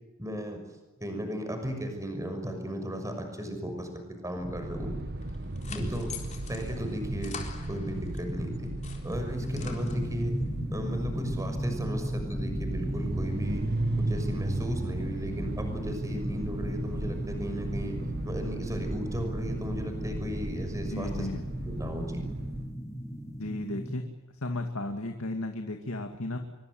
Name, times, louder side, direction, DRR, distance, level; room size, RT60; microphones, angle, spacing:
voice 1, 0.2-0.6 1.0-3.9 4.2-4.9 5.7-7.4 7.7-8.7 9.0-10.4 10.7-13.6 14.0-18.0 18.2-21.3 21.6-22.2, equal, 15° right, 6 dB, 6.1 m, -35 dB
sound 1, 4.4-22.7, right 2 dB, 45° right, 1.4 m, -35 dB
sound 2, 5.2-8.3 8.6-10.4, left 6 dB, 35° left, 4.2 m, -45 dB
sound 3, 9.4-23.9, equal, 15° left, 3.0 m, -36 dB
voice 2, 20.9-21.4 23.4-24.1 24.3-26.4, left 2 dB, 70° left, 5 dB, 2.4 m, -34 dB
26.0 x 24.0 x 7.9 m, 1.1 s
head